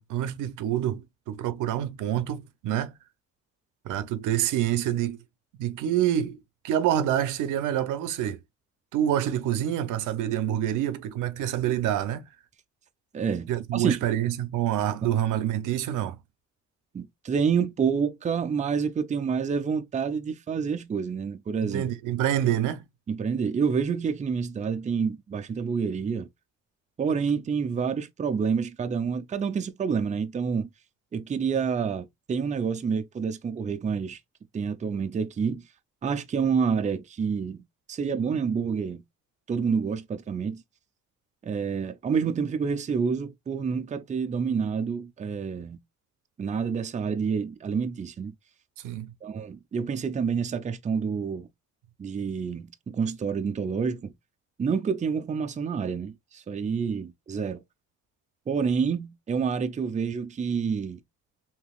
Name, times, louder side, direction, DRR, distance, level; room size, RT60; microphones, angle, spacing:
voice 1, 0.0-2.9 3.8-5.2 5.6-8.4 8.9-12.3 13.5-16.2 21.6-22.8 48.8-49.1, right 11 dB, 85° right, 0.6 m, -27 dB
voice 2, 13.1-14.0 15.0-15.1 16.9-21.8 23.1-26.3 27.0-30.7 31.1-34.2 34.5-35.6 36.0-37.6 37.9-39.0 39.5-40.6 41.4-45.8 46.4-48.3 49.2-51.5 52.0-54.1 54.6-57.6 58.5-61.0, right 6 dB, 25° right, 0.5 m, -28 dB
3.4 x 2.9 x 2.3 m
cardioid pair, 90°, 30 cm